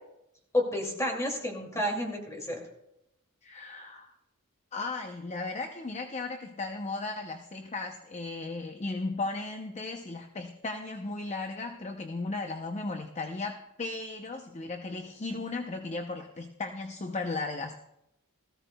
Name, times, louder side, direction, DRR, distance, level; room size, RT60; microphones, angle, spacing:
voice 1, 0.5-2.6, left 1 dB, 15° left, 1 dB, 2.3 m, -30 dB
voice 2, 3.4-4.1 4.7-17.8, left 3 dB, 30° left, 6 dB, 0.6 m, -36 dB
18.0 x 14.5 x 2.2 m, 0.85 s
head